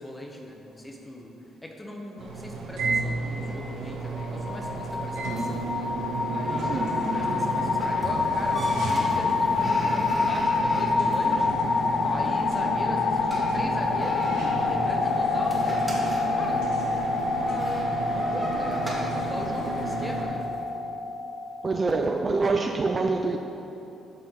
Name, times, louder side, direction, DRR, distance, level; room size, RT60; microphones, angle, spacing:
voice 1, 0.0-1.3 1.6-5.9 6.3-6.8 7.1-16.7 18.1-20.5, equal, 10° left, 1 dB, 1.1 m, -39 dB
sound 1, 2.2-20.2, right 3 dB, 90° right, 1.2 m, -32 dB
sound 2, 3.4-20.6, equal, 10° right, 1.8 m, -41 dB
sound 3, 4.0-21.9, left 4 dB, 50° left, 0.5 m, -27 dB
voice 2, 21.6-23.4, right 3 dB, 35° right, 4 dB, 0.4 m, -25 dB
12.0 x 4.3 x 4.1 m, 2.8 s
cardioid pair, 90°, 0 cm